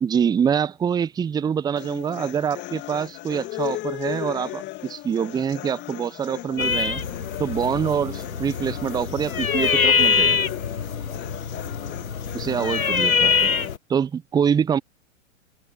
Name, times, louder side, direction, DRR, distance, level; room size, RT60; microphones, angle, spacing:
voice 1, 0.0-7.0 7.4-10.4 12.3-13.5 13.9-14.8, right 7 dB, 10° right, 0.9 m, -25 dB
sound 1, 1.8-13.8, left 17 dB, 25° left, 3.2 m, -35 dB
sound 2, 6.6-13.8, left 5 dB, 80° left, 1.4 m, -24 dB
figure-of-eight pair, 110°, 41 cm